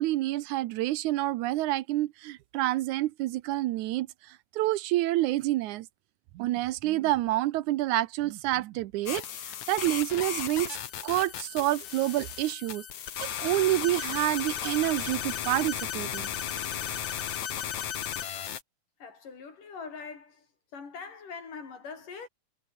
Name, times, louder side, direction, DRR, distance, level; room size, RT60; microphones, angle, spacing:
voice 1, 0.0-4.1 4.5-5.9 6.4-10.8 11.0-12.8 13.2-16.3, right 16 dB, 80° right, 2.1 m, -28 dB
sound 1, 9.1-18.6, left 10 dB, 65° left, 3.1 m, -35 dB
voice 2, 19.0-20.5 20.7-22.3, left 5 dB, 90° left, 6.5 m, -42 dB
omnidirectional pair, 3.6 m